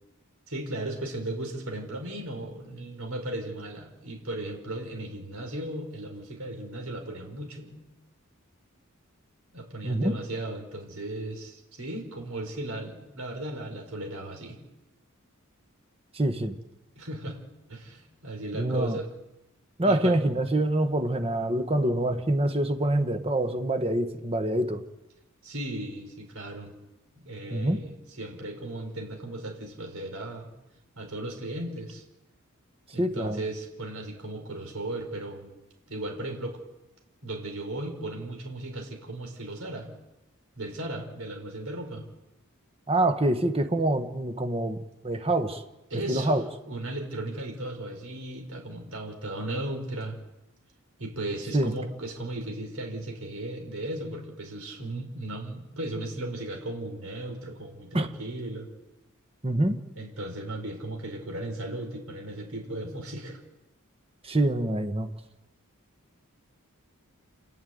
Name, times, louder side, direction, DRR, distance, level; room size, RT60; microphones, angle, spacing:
voice 1, 0.5-7.8 9.5-14.6 16.9-17.4 17.7-19.1 19.8-20.2 25.4-26.7 27.1-30.5 31.0-32.0 32.9-35.5 35.9-36.6 37.2-39.9 40.6-42.0 45.9-46.3 46.6-50.2 51.0-58.7 59.9-63.4, right 1 dB, 75° right, 3 dB, 4.9 m, -36 dB
voice 2, 9.8-10.2 16.1-16.5 18.6-19.0 19.8-24.8 27.5-27.8 33.0-33.4 42.9-45.6 46.1-46.4 51.5-51.7 57.9-58.1 59.4-59.8 64.2-65.1, right 1 dB, 25° right, 8 dB, 1.4 m, -25 dB
29.5 x 11.0 x 9.5 m, 0.98 s
head